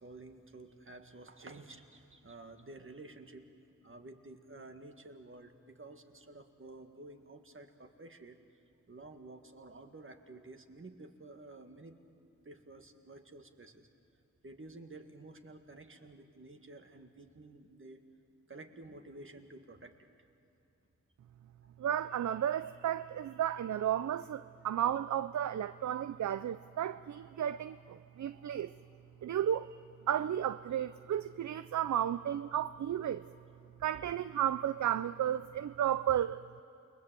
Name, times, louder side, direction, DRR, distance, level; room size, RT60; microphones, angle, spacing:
voice 1, 0.0-3.5 3.8-8.4 8.9-11.9 12.5-13.9 14.4-18.0 18.5-19.9, right 2 dB, 40° right, 1.9 m, -51 dB
voice 2, 21.8-28.7 29.2-29.8 30.1-33.2 33.8-36.4, right 10 dB, 65° right, 0.5 m, -33 dB
29.0 x 21.0 x 7.6 m
cardioid pair, 60°, 31 cm